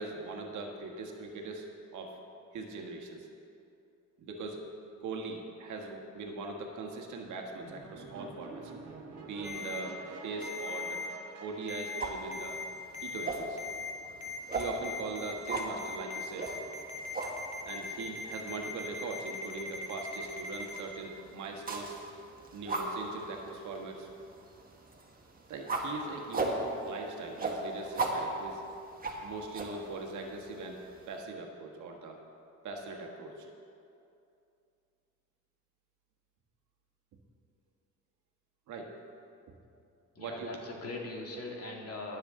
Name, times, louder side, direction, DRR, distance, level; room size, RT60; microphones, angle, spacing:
voice 1, 0.0-2.2 2.5-3.3 4.2-4.7 5.0-8.7 9.2-11.0 11.4-12.6 13.0-13.6 14.5-16.5 17.6-22.0 22.5-24.1 25.5-28.6 29.2-32.2 32.6-33.5 38.7-39.0 40.2-40.5, right 3 dB, 75° right, 2 dB, 1.5 m, -41 dB
sound 1, 7.6-13.1, right 4 dB, 55° right, 1.6 m, -47 dB
Ringtone, 9.4-9.8 10.4-11.1 11.7-12.0 12.3-12.6 12.9-13.3 13.6-13.9 14.2-20.8, left 4 dB, 25° left, 1.7 m, -40 dB
sound 2, 12.0-31.2, right 2 dB, 30° right, 1.5 m, -39 dB
voice 2, 40.1-42.2, left 2 dB, 55° left, 0 dB, 2.2 m, -41 dB
20.0 x 7.3 x 3.7 m, 2.6 s
cardioid pair, 90°, 30 cm